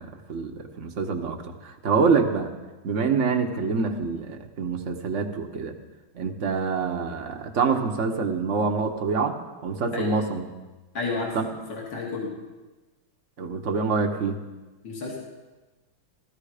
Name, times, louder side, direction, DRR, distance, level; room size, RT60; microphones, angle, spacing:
voice 1, 0.0-2.5 2.8-5.7 6.1-10.5 11.3-11.4 13.4-14.4, right 5 dB, 45° right, 5 dB, 1.2 m, -26 dB
voice 2, 10.9-11.4 11.7-12.3 14.8-15.2, left 3 dB, 65° left, -2 dB, 2.9 m, -31 dB
16.0 x 14.0 x 4.9 m, 1.2 s
omnidirectional pair, 2.2 m